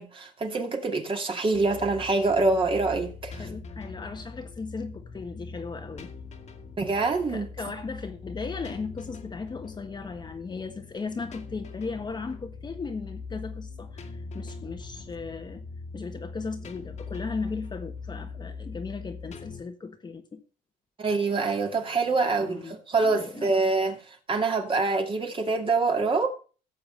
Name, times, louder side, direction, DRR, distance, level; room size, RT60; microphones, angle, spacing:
voice 1, 0.0-3.4 6.8-7.5 21.0-26.3, right 3 dB, 30° right, 2.4 m, -25 dB
sound 1, 1.5-19.6, left 4 dB, 40° left, 1.8 m, -42 dB
voice 2, 3.4-6.1 7.3-15.7 15.9-20.4 22.4-22.8 23.0-23.5, left 4 dB, 25° left, 1.3 m, -37 dB
17.0 x 7.3 x 3.4 m
cardioid pair, 110°, 17 cm